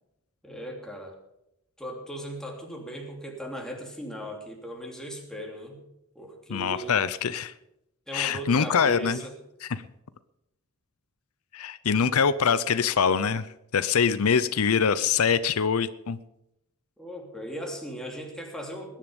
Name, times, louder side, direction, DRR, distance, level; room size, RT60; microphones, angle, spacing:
voice 1, 0.4-1.1 1.8-5.8 6.1-6.9 8.1-9.3 17.0-19.0, equal, 5° left, 0 dB, 3.1 m, -38 dB
voice 2, 6.5-7.5 8.1-9.2 9.6-9.8 11.5-13.5 13.7-16.2, left 6 dB, 80° left, 15 dB, 0.6 m, -24 dB
20.5 x 10.5 x 5.3 m, 0.84 s
head